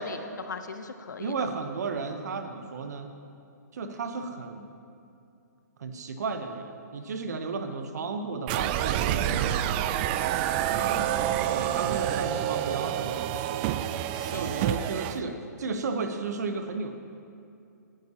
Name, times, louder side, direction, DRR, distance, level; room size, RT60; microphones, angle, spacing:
voice 1, 0.0-1.3 10.7-11.6 14.1-15.3, left 4 dB, 75° left, 8 dB, 0.8 m, -41 dB
voice 2, 1.2-3.1 3.7-4.8 5.8-9.9 11.5-13.4 14.2-16.9, right 4 dB, 65° right, 7 dB, 1.0 m, -34 dB
sound 1, 8.5-15.2, right 11 dB, 30° right, 0.4 m, -28 dB
18.5 x 9.8 x 2.9 m, 2.5 s
figure-of-eight pair, 125°, 10 cm